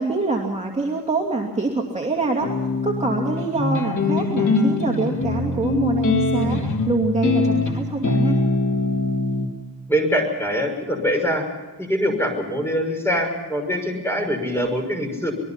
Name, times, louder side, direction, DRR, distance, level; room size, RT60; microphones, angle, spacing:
voice 1, 0.0-2.5 2.8-8.4, right 3 dB, 15° right, -1 dB, 2.6 m, -25 dB
sound 1, 2.4-9.5, left 3 dB, 50° left, 3.2 m, -22 dB
voice 2, 9.9-11.4 11.8-15.3, equal, 5° left, 3 dB, 6.0 m, -23 dB
26.0 x 21.5 x 5.7 m, 1.3 s
wide cardioid pair, 130°, 37 cm